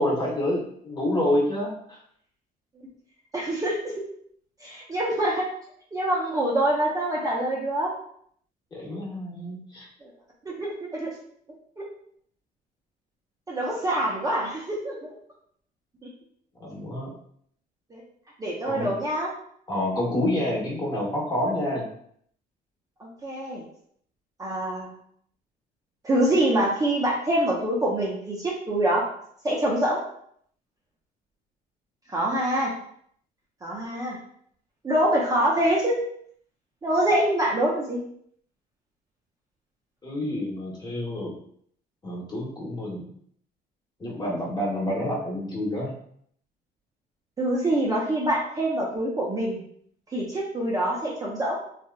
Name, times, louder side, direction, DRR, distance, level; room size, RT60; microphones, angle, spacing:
voice 1, 0.0-2.0 8.7-9.9 16.6-17.1 18.6-18.9 19.7-21.9 40.0-41.3 42.0-43.1 44.0-45.9, left 1 dB, 25° left, -3 dB, 1.0 m, -28 dB
voice 2, 3.3-3.9 4.6-5.5 5.9-7.9 10.0-10.1 10.5-11.2 11.8-11.9 13.5-15.0 17.9-18.0 18.4-19.3 23.0-23.6 24.4-24.9 26.0-29.0 29.4-30.0 32.1-32.7 33.6-34.2 34.8-36.0 36.8-38.0 47.4-49.6 50.1-51.6, right 1 dB, 20° right, -4 dB, 0.5 m, -25 dB
2.8 x 2.4 x 2.2 m, 0.65 s
cardioid pair, 110°, 17 cm